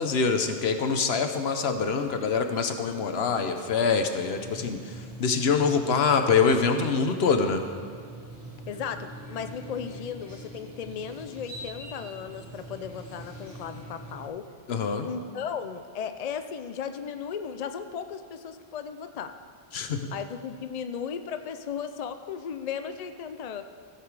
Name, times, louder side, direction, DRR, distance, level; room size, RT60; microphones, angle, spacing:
voice 1, 0.0-7.6 14.7-15.1 19.7-20.1, left 5 dB, 75° left, 7 dB, 1.0 m, -25 dB
sound 1, 4.3-14.3, right 1 dB, 35° right, 1.8 m, -43 dB
voice 2, 8.7-14.4 15.0-19.3 20.1-23.6, left 7 dB, 50° left, 9 dB, 0.5 m, -36 dB
15.5 x 6.8 x 4.8 m, 2.1 s
omnidirectional pair, 1.1 m